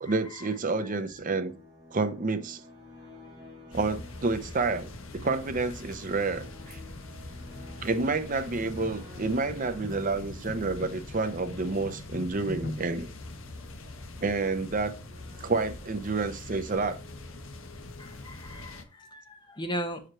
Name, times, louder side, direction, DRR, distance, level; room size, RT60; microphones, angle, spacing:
voice 1, 0.0-1.5 1.9-2.6 3.7-6.8 7.8-13.1 14.2-14.9 15.4-17.0, right 3 dB, 40° right, 0.7 m, -29 dB
sound 1, 1.1-17.7, left 1 dB, 20° right, 2.4 m, -53 dB
sound 2, 3.7-18.8, left 2 dB, 75° left, 1.1 m, -43 dB
sound 3, 8.5-14.3, left 2 dB, 45° left, 0.6 m, -44 dB
voice 2, 18.0-20.0, equal, 20° left, 1.0 m, -37 dB
6.3 x 5.0 x 4.3 m
head